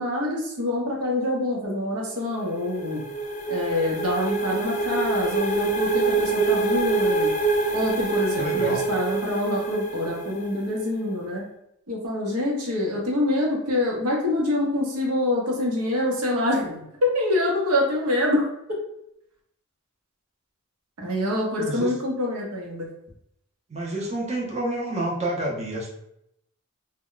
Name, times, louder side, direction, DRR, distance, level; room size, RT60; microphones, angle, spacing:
voice 1, 0.0-3.0 3.5-7.3 7.7-11.4 11.9-18.5 21.0-22.9, left 1 dB, 85° right, -2 dB, 0.8 m, -25 dB
sound 1, 2.2-10.9, right 3 dB, 35° left, 0.3 m, -26 dB
voice 2, 8.4-8.8 21.6-21.9 23.7-25.9, right 1 dB, 30° right, -3 dB, 0.6 m, -28 dB
2.2 x 2.1 x 3.7 m, 0.77 s
head